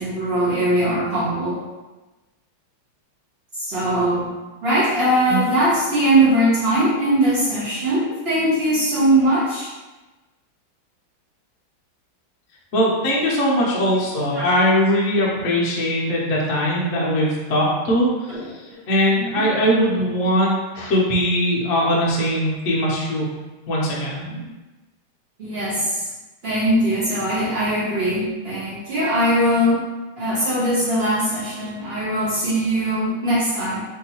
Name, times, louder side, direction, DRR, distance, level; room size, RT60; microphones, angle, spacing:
voice 1, 0.0-1.6 3.6-4.3 4.6-9.7 14.3-14.5 18.3-18.7 19.1-19.4 24.3-24.5 25.4-26.1 26.4-29.8 30.2-33.8, right 1 dB, 55° right, -8 dB, 0.7 m, -21 dB
voice 2, 12.7-18.1 18.9-23.3 23.7-24.3, equal, 65° left, -4 dB, 0.8 m, -20 dB
3.5 x 2.7 x 2.9 m, 1.1 s
omnidirectional pair, 2.3 m